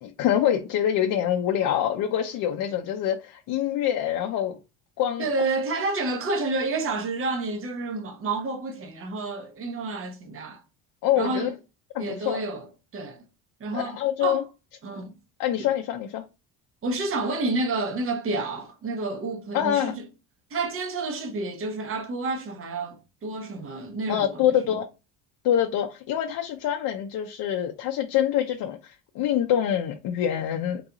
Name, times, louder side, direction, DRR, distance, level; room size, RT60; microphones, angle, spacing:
voice 1, 0.0-4.6 5.0-5.3 11.0-11.5 11.9-12.4 13.7-14.4 15.4-16.2 19.5-19.9 24.1-24.9 25.4-30.8, left 10 dB, 55° left, 0.6 m, -25 dB
voice 2, 5.2-10.6 11.2-11.5 12.0-12.7 12.9-13.2 13.6-14.4 14.8-15.1 16.8-20.0 20.5-24.5, right 3 dB, 35° right, 0.9 m, -29 dB
3.8 x 2.3 x 2.8 m
cardioid pair, 120°, 40 cm